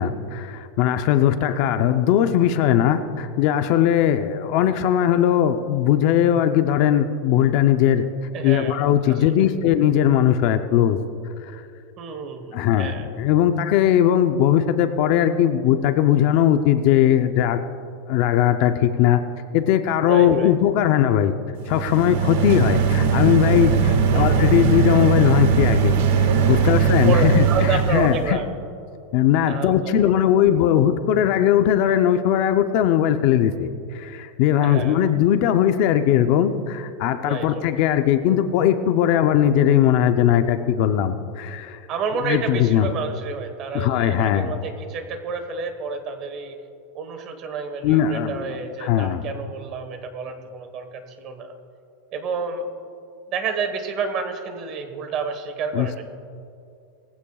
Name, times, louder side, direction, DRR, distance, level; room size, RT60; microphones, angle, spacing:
voice 1, 0.0-8.0 8.4-11.0 11.5-11.6 12.5-17.6 18.1-19.2 19.5-21.3 21.7-28.4 29.1-41.8 42.2-42.9 43.7-44.5 47.8-48.5 48.8-49.2 55.7-56.0, left 10 dB, 45° left, 9 dB, 0.6 m, -19 dB
voice 2, 8.3-9.5 12.0-13.1 20.1-20.6 24.1-24.5 26.7-26.8 27.0-28.5 29.4-30.1 34.6-35.0 37.2-37.7 41.9-46.6 46.9-51.5 52.1-52.7 53.3-56.0, right 5 dB, 30° right, 7 dB, 1.3 m, -30 dB
sound 1, 21.6-28.2, right 6 dB, 65° right, 1.6 m, -19 dB
20.0 x 15.5 x 2.4 m, 2.6 s
supercardioid pair, 175°, 0 cm